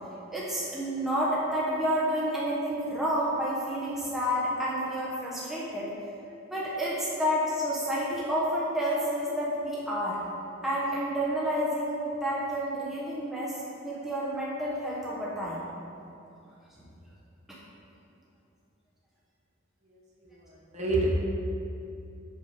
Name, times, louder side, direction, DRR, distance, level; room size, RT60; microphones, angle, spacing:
voice 1, 0.3-5.9 6.5-10.2 10.6-15.6 16.8-16.9 17.5-17.6, equal, ahead, -7 dB, 1.1 m, -30 dB
voice 2, 19.9-21.1, right 3 dB, 35° right, -4 dB, 1.4 m, -31 dB
7.0 x 6.5 x 5.1 m, 2.7 s
head